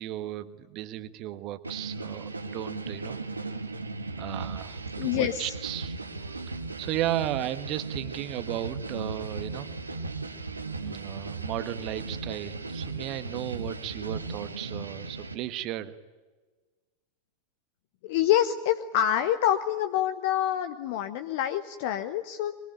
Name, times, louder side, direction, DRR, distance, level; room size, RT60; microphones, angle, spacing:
voice 1, 0.0-3.2 4.2-6.0 6.3-6.4 6.8-9.7 10.8-15.9, right 13 dB, 40° right, 12 dB, 1.5 m, -35 dB
sound 1, 1.6-15.3, right 3 dB, 80° right, 1.7 m, -37 dB
voice 2, 5.0-5.5 18.0-22.5, left 11 dB, 50° left, 10 dB, 1.1 m, -26 dB
24.0 x 23.5 x 9.2 m, 1.3 s
figure-of-eight pair, 90°, 0 cm